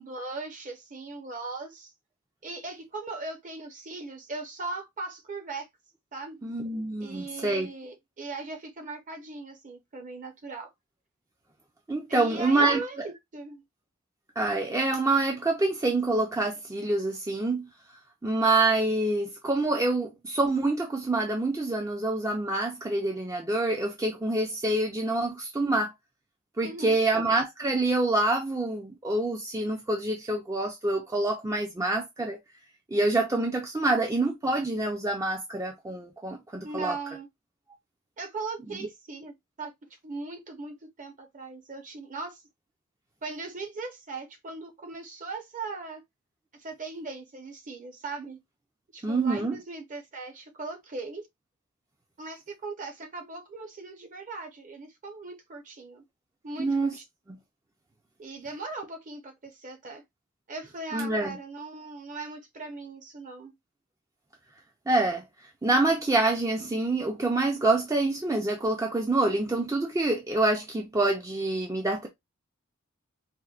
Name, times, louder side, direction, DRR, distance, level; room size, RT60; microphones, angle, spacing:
voice 1, 0.0-1.9 2.4-5.7 6.1-6.4 7.0-10.7 12.1-13.6 26.6-27.0 36.6-37.3 38.2-39.7 40.0-42.4 43.2-46.0 46.6-48.4 48.9-51.2 52.2-56.0 56.4-57.0 58.2-60.0 60.5-63.5, right 3 dB, 40° right, 0.8 m, -39 dB
voice 2, 6.4-7.7 11.9-12.8 14.4-17.7 18.2-25.9 26.6-32.4 32.9-37.0 38.7-38.9 49.0-49.6 56.6-56.9 57.3-57.4 60.9-61.4 64.9-65.2 65.6-72.1, right 2 dB, 15° right, 0.4 m, -26 dB
4.2 x 2.1 x 2.4 m
head